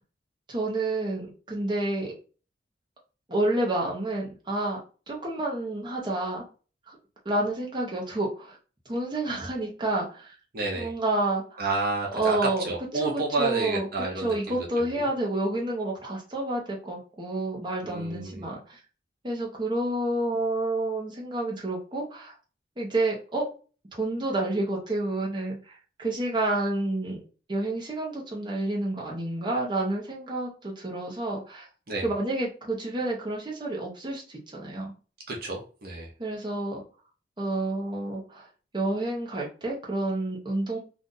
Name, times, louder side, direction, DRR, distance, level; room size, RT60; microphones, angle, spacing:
voice 1, 0.5-2.1 3.3-4.8 5.1-6.4 6.9-7.0 7.2-8.6 8.9-10.3 10.7-11.6 12.1-13.9 14.2-18.8 19.2-22.3 22.8-23.5 23.9-27.2 27.5-31.7 32.0-34.9 36.2-36.8 37.4-38.5 38.7-40.8, right 2 dB, 25° right, -3 dB, 0.8 m, -29 dB
voice 2, 10.5-10.9 11.6-12.4 12.7-15.0 17.8-18.5 31.9-32.1 35.3-36.1, right 3 dB, 55° right, -1 dB, 0.8 m, -30 dB
2.6 x 2.5 x 3.8 m, 0.36 s
head